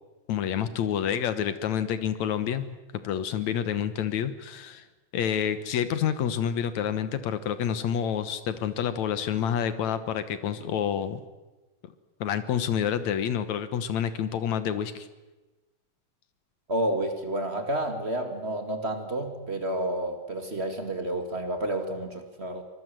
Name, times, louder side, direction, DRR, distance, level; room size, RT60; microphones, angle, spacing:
voice 1, 0.3-4.8 5.1-11.2 12.2-15.1, left 9 dB, 65° left, 12 dB, 2.3 m, -28 dB
voice 2, 16.7-22.6, right 1 dB, 25° right, 6 dB, 1.8 m, -30 dB
25.0 x 20.5 x 7.7 m, 1.1 s
omnidirectional pair, 3.7 m